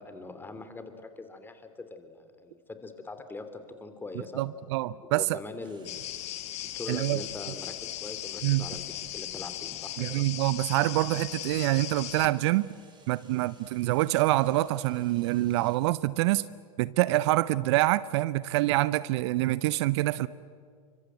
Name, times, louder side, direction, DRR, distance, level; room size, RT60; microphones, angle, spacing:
voice 1, 0.0-4.4 5.0-6.1 6.6-8.8 9.1-10.3, left 3 dB, 10° left, 9 dB, 3.0 m, -42 dB
voice 2, 4.4-5.4 6.9-7.2 8.4-8.7 10.0-12.7 13.1-16.5 16.8-20.3, right 17 dB, 50° right, 18 dB, 0.7 m, -26 dB
sound 1, 5.6-15.8, right 4 dB, 25° right, 7.0 m, -60 dB
sound 2, 5.8-12.3, left 14 dB, 35° left, 1.7 m, -38 dB
29.5 x 25.0 x 8.1 m, 2.1 s
figure-of-eight pair, 100°, 19 cm